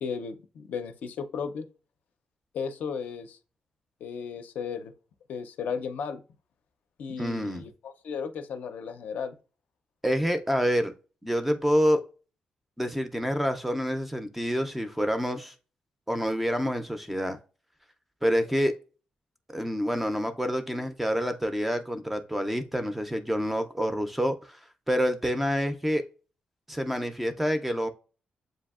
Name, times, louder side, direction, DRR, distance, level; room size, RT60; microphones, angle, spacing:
voice 1, 0.0-1.7 2.5-3.4 4.0-4.9 5.3-6.2 7.0-9.3, left 6 dB, 70° left, 0.4 m, -35 dB
voice 2, 7.2-7.6 10.0-10.9 11.2-12.0 12.8-15.5 16.1-17.4 18.2-18.7 19.5-24.6 24.9-26.0 26.7-27.9, equal, 5° right, 0.3 m, -27 dB
7.5 x 2.6 x 2.3 m
wide cardioid pair, 180°, 3 cm